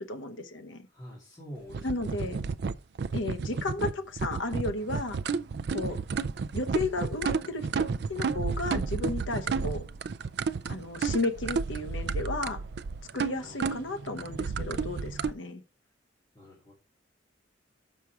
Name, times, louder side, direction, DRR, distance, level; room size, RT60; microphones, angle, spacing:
voice 1, 0.0-0.9 1.8-2.4 3.1-5.2 5.7-6.0 6.5-9.8 10.7-12.6 13.1-15.6, left 2 dB, 75° left, 0.9 m, -33 dB
voice 2, 0.9-1.9 13.4-13.5 16.3-16.7, equal, 20° left, 2.6 m, -45 dB
sound 1, 1.7-15.3, right 5 dB, 55° right, 0.4 m, -32 dB
6.7 x 5.9 x 4.7 m
head